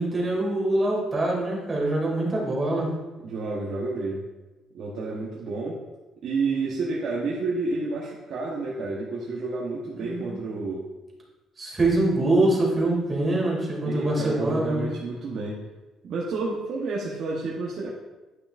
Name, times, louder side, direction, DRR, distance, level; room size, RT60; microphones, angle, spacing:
voice 1, 0.0-2.9 10.0-10.4 11.6-14.9, right 2 dB, 20° right, -4 dB, 2.4 m, -24 dB
voice 2, 3.2-4.2 4.7-5.8 6.2-10.9 13.8-15.6 16.0-17.9, right 3 dB, 60° right, -4 dB, 1.0 m, -30 dB
9.7 x 5.6 x 2.5 m, 1.1 s
cardioid pair, 125°, 0 cm